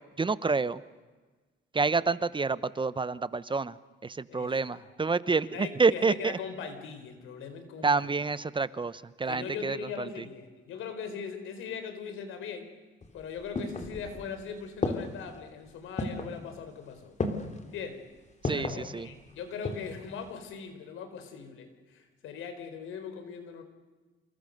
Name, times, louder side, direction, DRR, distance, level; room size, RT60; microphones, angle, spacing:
voice 1, 0.2-0.8 1.7-3.7 4.0-6.4 7.8-8.9 9.2-9.8 18.4-19.1, right 4 dB, 25° right, 16 dB, 0.9 m, -28 dB
voice 2, 4.3-4.9 5.3-8.1 9.2-12.7 13.1-17.2 17.7-18.0 18.5-23.6, left 6 dB, 85° left, 8 dB, 4.6 m, -40 dB
sound 1, 13.0-14.4 14.8-15.4 16.0-16.4 17.2-17.6 18.4-18.9 19.4-20.0 20.3-20.4, left 2 dB, 35° left, 3.4 m, -33 dB
28.0 x 28.0 x 6.7 m, 1.3 s
cardioid pair, 90°, 20 cm